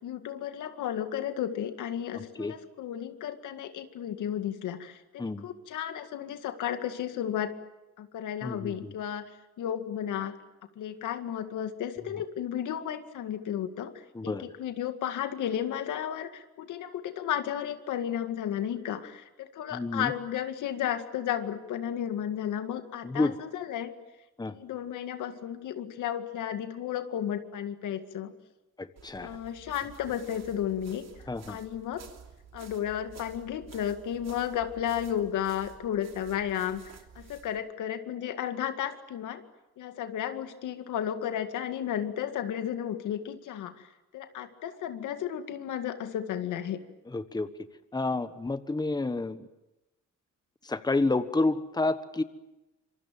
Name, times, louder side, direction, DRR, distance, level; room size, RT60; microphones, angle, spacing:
voice 1, 0.0-7.5 8.0-9.3 9.6-10.3 10.8-23.9 24.5-28.3 29.2-31.1 31.5-32.0 32.5-36.8 37.2-39.4 39.8-43.9 44.1-46.8, left 10 dB, 80° left, 8 dB, 2.1 m, -33 dB
voice 2, 8.4-8.7 14.1-14.4 19.7-20.1 23.0-23.3 24.4-24.5 28.8-29.3 31.3-31.6 47.1-47.5 47.9-49.5 50.6-52.2, left 2 dB, 15° left, 11 dB, 1.3 m, -29 dB
sound 1, 29.0-37.6, right 7 dB, 60° right, 3.0 m, -52 dB
26.5 x 23.5 x 7.6 m, 0.99 s
cardioid pair, 90°, 30 cm